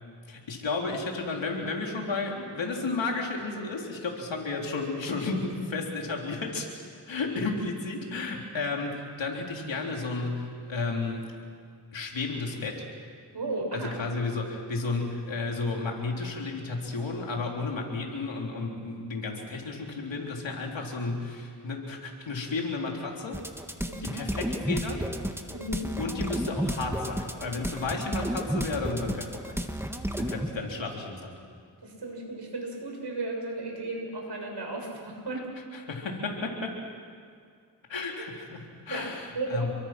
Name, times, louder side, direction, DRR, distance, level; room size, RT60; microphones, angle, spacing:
voice 1, 0.3-6.7 7.1-11.2 11.9-12.8 13.7-23.4 24.0-25.1 26.0-29.6 30.2-31.3 35.7-36.8 37.9-39.7, left 3 dB, 90° left, 0 dB, 3.8 m, -32 dB
voice 2, 13.3-13.9 23.9-24.2 25.5-25.9 31.8-35.5 38.9-39.1 39.4-39.7, right 2 dB, 65° right, 1 dB, 6.9 m, -34 dB
sound 1, 23.3-30.5, equal, 5° right, 2.1 m, -32 dB
29.0 x 23.0 x 6.0 m, 2.2 s
cardioid pair, 60°, 44 cm